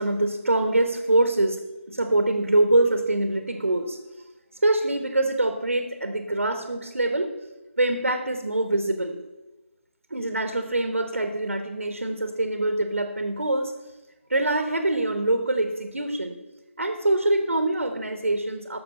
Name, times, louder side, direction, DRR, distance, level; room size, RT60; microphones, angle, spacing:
voice 1, 0.0-1.6 1.9-4.0 4.6-7.3 7.8-9.2 10.1-13.7 14.3-16.4 16.8-18.8, right 2 dB, 70° right, 7 dB, 1.3 m, -24 dB
12.0 x 6.7 x 5.4 m, 1.1 s
figure-of-eight pair, 150°, 7 cm